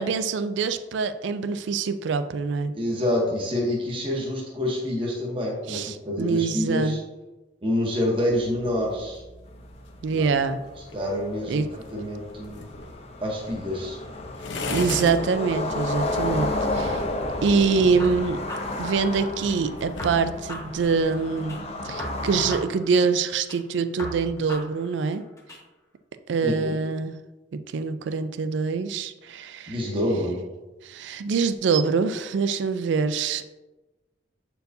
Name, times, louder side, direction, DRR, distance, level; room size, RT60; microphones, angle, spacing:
voice 1, 0.0-2.7 5.7-7.0 10.0-10.6 11.5-11.7 14.7-17.0 17.4-18.4 18.8-21.6 21.8-25.2 26.3-27.2 27.7-29.8 30.8-33.5, right 5 dB, 75° right, 11 dB, 0.3 m, -25 dB
voice 2, 2.8-7.0 7.6-9.2 10.1-10.2 10.9-11.7 11.9-12.6 13.2-14.0 26.4-26.8 29.7-30.4, left 1 dB, 30° right, -2 dB, 1.0 m, -27 dB
sound 1, 8.2-20.3, left 2 dB, 80° left, 0.8 m, -40 dB
sound 2, 9.6-9.7 10.0-10.1 10.4-22.6, left 2 dB, 35° left, 0.6 m, -32 dB
sound 3, 18.0-19.6 20.0-21.6 22.0-23.6 24.0-25.6, left 1 dB, 15° left, 0.9 m, -39 dB
7.8 x 4.5 x 2.7 m, 1.1 s
head